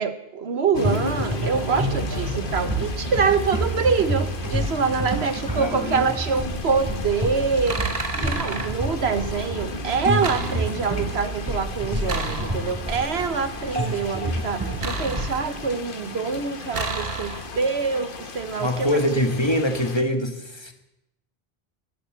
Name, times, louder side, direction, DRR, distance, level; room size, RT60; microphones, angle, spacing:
voice 1, 0.0-18.9, right 5 dB, 80° right, 10 dB, 1.4 m, -25 dB
sound 1, 0.7-20.0, left 4 dB, 55° left, 1.3 m, -35 dB
sound 2, 0.8-16.5, right 1 dB, 20° right, 3.2 m, -29 dB
voice 2, 5.3-6.1 18.6-20.7, left 1 dB, 25° left, 6 dB, 1.6 m, -24 dB
sound 3, 7.6-8.7 10.2-11.0 12.1-12.9 14.8-15.8 16.7-17.7, right 3 dB, 65° right, 1.7 m, -31 dB
17.0 x 11.0 x 7.6 m, 0.91 s
omnidirectional pair, 1.1 m